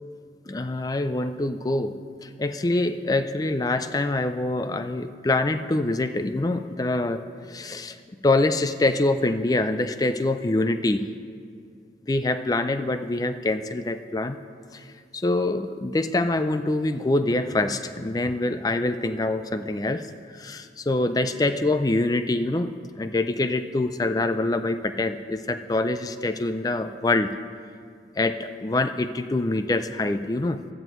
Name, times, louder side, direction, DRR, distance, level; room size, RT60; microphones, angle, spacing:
voice 1, 0.5-1.9 2.2-8.0 8.2-11.0 12.0-14.4 14.7-14.8 15.1-27.3 28.2-30.6, left 2 dB, 20° left, 10 dB, 0.4 m, -25 dB
15.5 x 11.5 x 3.1 m, 2.2 s
head